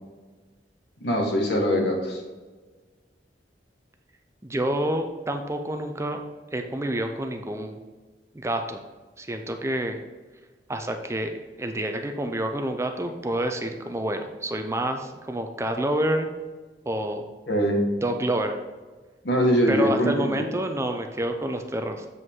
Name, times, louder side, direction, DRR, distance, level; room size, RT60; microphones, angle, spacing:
voice 1, 1.0-2.2 17.5-17.8 19.2-20.4, equal, 70° left, 0 dB, 1.7 m, -22 dB
voice 2, 4.4-6.2 6.5-7.8 8.3-8.8 9.2-10.0 10.7-16.3 16.9-17.3 18.0-18.6 19.7-22.1, right 1 dB, 15° right, 5 dB, 0.5 m, -28 dB
8.0 x 5.2 x 3.7 m, 1.3 s
head